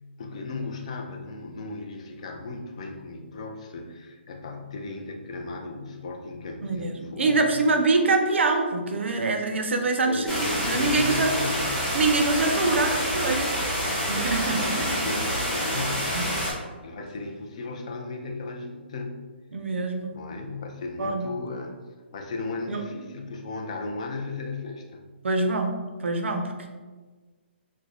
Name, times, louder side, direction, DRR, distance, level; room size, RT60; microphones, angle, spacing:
voice 1, 0.2-7.6 10.0-11.9 13.6-16.1 16.8-19.2 20.1-21.8 22.1-25.0, left 3 dB, 35° left, 3 dB, 0.4 m, -36 dB
voice 2, 6.6-11.3 11.9-13.6 14.0-15.0 16.1-16.4 19.5-20.1 21.0-21.3 22.7-22.8 25.2-26.7, right 3 dB, 80° right, 4 dB, 0.5 m, -25 dB
sound 1, 10.3-16.5, equal, ahead, 0.8 m, -27 dB
3.3 x 2.1 x 3.7 m, 1.4 s
hypercardioid pair, 170°, 6 cm